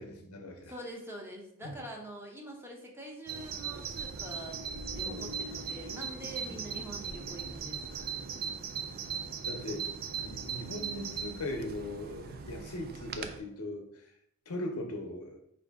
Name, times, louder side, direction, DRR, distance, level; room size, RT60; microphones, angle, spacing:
voice 1, 0.0-0.7 1.6-1.7 5.0-5.3 6.4-6.6 9.3-9.9 10.2-14.1 14.5-15.4, left 1 dB, 75° left, 4 dB, 0.7 m, -39 dB
voice 2, 0.7-4.6 4.9-7.9, right 1 dB, 10° right, 0 dB, 0.7 m, -45 dB
Bird vocalization bird call bird song, 3.3-13.4, right 6 dB, 45° right, 0.4 m, -39 dB
4.8 x 2.6 x 3.5 m, 0.72 s
head